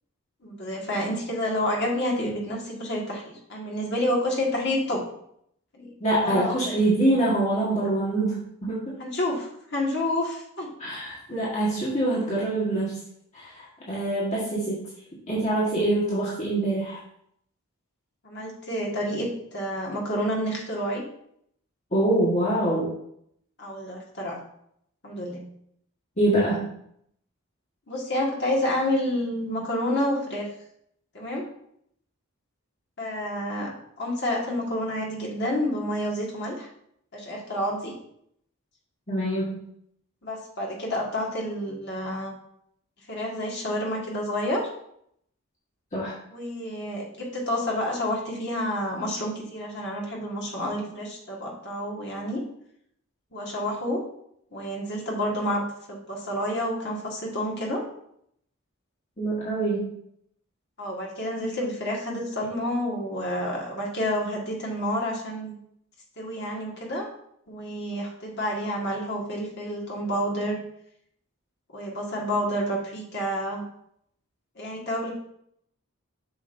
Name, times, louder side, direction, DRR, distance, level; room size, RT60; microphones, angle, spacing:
voice 1, 0.4-5.0 5.7-5.9 6.2-6.7 9.0-10.7 18.2-21.0 23.6-24.4 25.0-25.4 27.9-30.5 31.1-31.4 33.0-33.7 34.0-36.7 37.1-37.9 40.2-42.3 43.1-44.7 46.3-52.4 53.3-54.0 54.5-57.8 60.8-65.6 66.2-67.1 67.5-70.6 71.7-73.6 74.6-75.1, left 1 dB, 50° left, -2 dB, 1.7 m, -29 dB
voice 2, 6.0-8.9 10.8-13.0 13.3-14.9 15.3-17.0 21.9-22.9 26.2-26.7 39.1-39.6 45.9-46.1 59.2-59.9, right 1 dB, 30° left, -7 dB, 1.6 m, -25 dB
7.3 x 6.4 x 2.6 m, 0.71 s
head